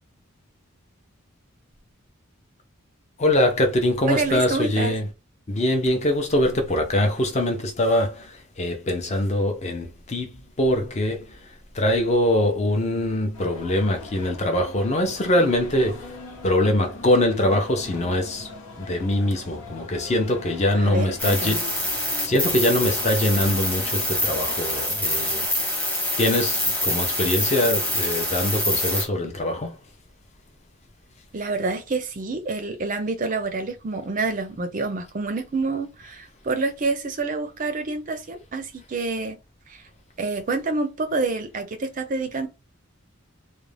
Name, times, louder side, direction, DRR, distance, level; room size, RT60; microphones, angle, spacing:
voice 1, 3.2-5.1 5.5-16.2 16.4-18.5 18.8-21.6 21.9-25.4 26.2-29.8, left 1 dB, 30° left, 0.5 m, -23 dB
voice 2, 4.1-4.9 20.7-21.6 31.3-39.4 39.7-39.8 40.2-42.5, right 3 dB, 40° right, 0.4 m, -27 dB
sound 1, 13.3-25.5, left 3 dB, 75° left, 0.8 m, -41 dB
sound 2, 21.2-29.0, left 1 dB, 5° left, 0.8 m, -25 dB
2.4 x 2.1 x 3.2 m
head